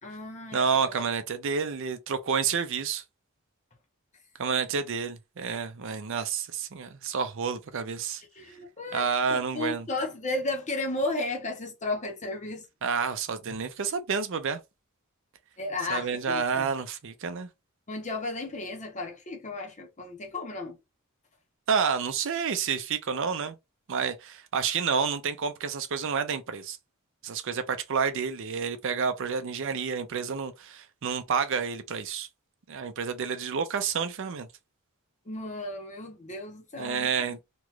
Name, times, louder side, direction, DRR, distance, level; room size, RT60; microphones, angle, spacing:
voice 1, 0.0-1.1 8.3-12.7 13.5-13.6 15.6-16.7 17.9-20.8 35.3-37.4, left 2 dB, 35° left, 0.9 m, -34 dB
voice 2, 0.5-3.0 4.4-8.2 8.9-9.9 12.8-14.6 15.9-17.5 21.7-23.6 23.9-26.8 27.2-32.3 32.7-34.5 36.8-37.4, right 6 dB, 60° right, 0.5 m, -29 dB
3.0 x 2.4 x 3.1 m
head